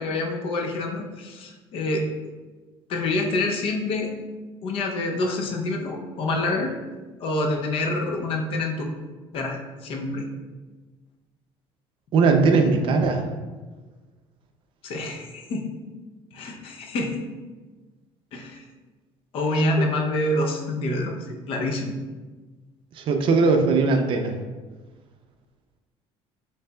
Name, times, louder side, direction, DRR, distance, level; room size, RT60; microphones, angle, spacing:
voice 1, 0.0-2.1 2.9-4.1 4.6-6.7 7.2-8.9 9.3-10.2 14.8-15.7 16.3-17.3 18.3-18.6 19.3-21.1 21.5-21.9, left 2 dB, 55° left, 2 dB, 0.7 m, -27 dB
voice 2, 12.1-13.3 22.9-24.3, right 4 dB, 50° right, 5 dB, 0.5 m, -19 dB
6.5 x 3.3 x 2.3 m, 1.3 s
cardioid pair, 140°, 11 cm